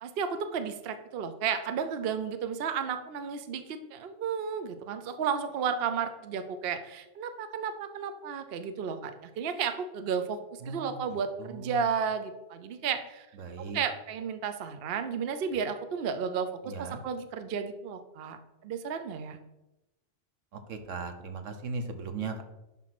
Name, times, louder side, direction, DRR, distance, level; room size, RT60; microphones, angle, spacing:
voice 1, 0.0-13.3 13.6-18.4 18.6-19.4, right 6 dB, 60° right, 9 dB, 0.8 m, -33 dB
voice 2, 10.6-11.0 11.4-11.9 13.3-13.8 16.6-17.0 20.5-22.4, right 4 dB, 85° right, 7 dB, 1.3 m, -38 dB
10.5 x 3.8 x 5.9 m, 0.98 s
omnidirectional pair, 1.3 m